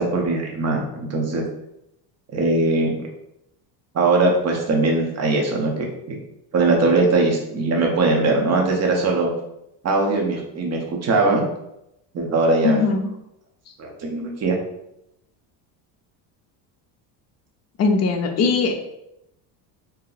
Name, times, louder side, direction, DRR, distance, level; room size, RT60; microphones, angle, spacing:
voice 1, 0.0-1.5 2.3-3.1 3.9-6.2 6.5-9.3 9.8-11.4 12.1-12.8 13.8-14.6, right 3 dB, 35° right, 1 dB, 0.8 m, -20 dB
voice 2, 12.6-13.1 17.8-18.7, left 4 dB, 35° left, 4 dB, 0.5 m, -19 dB
2.8 x 2.2 x 3.9 m, 0.83 s
cardioid pair, 120°, 44 cm